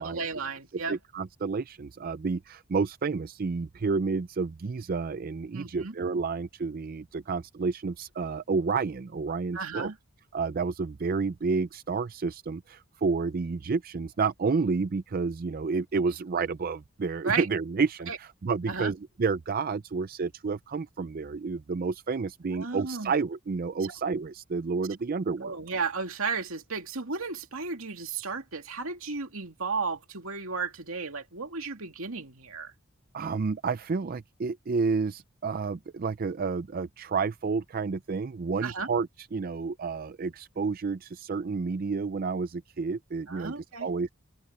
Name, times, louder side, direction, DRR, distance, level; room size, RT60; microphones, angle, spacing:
voice 1, 0.0-1.0 5.5-5.9 9.5-10.0 17.2-17.5 18.1-18.2 18.7-18.9 22.5-23.1 25.4-32.7 38.6-38.9 43.3-43.9, right 4 dB, 85° right, 2.5 m, -34 dB
voice 2, 0.9-9.9 10.3-25.6 33.1-43.5 43.8-44.1, right 4 dB, 45° right, 0.4 m, -30 dB
open air
head